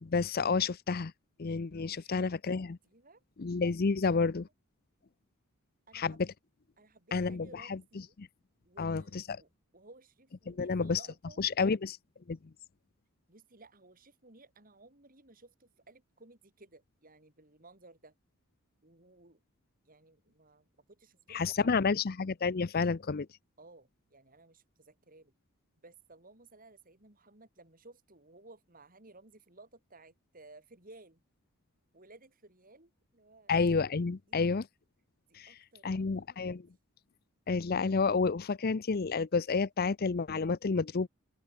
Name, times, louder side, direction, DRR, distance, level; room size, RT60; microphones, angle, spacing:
voice 1, 0.0-1.1 1.4-2.8 3.4-4.5 5.9-6.3 7.1-7.8 8.2-8.3 8.8-9.4 10.5-11.0 11.4-12.0 12.3-12.4 21.3-23.3 33.5-34.7 35.3-35.5 35.8-36.7 37.5-41.1, left 4 dB, 45° left, 0.5 m, -30 dB
voice 2, 2.9-3.2 5.9-6.2 6.8-8.2 8.6-11.4 13.3-18.1 18.8-19.4 19.8-21.8 23.6-25.3 25.8-31.2 31.9-33.5 34.3-34.4 35.3-36.6, right 2 dB, 40° right, 3.9 m, -57 dB
open air
head